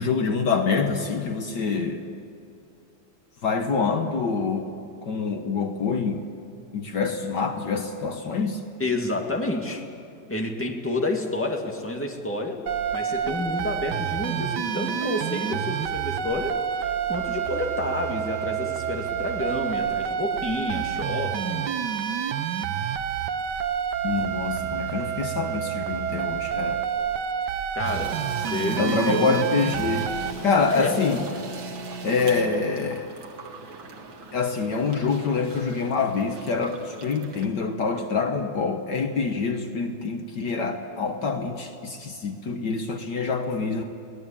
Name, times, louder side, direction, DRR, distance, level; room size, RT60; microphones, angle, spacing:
voice 1, 0.0-2.0 3.4-6.2 6.7-8.6 24.0-26.8 28.7-31.2 32.0-33.1 34.3-43.8, left 4 dB, 60° left, 5 dB, 1.7 m, -26 dB
voice 2, 8.8-9.8 10.3-12.6 12.9-21.7 27.7-29.4 30.7-31.0, left 2 dB, 5° left, 1 dB, 2.1 m, -29 dB
sound 1, 12.7-30.3, right 8 dB, 65° right, 1.4 m, -28 dB
sound 2, 27.8-37.5, right 3 dB, 85° right, 2.6 m, -39 dB
23.5 x 18.0 x 8.8 m, 2.6 s
omnidirectional pair, 2.1 m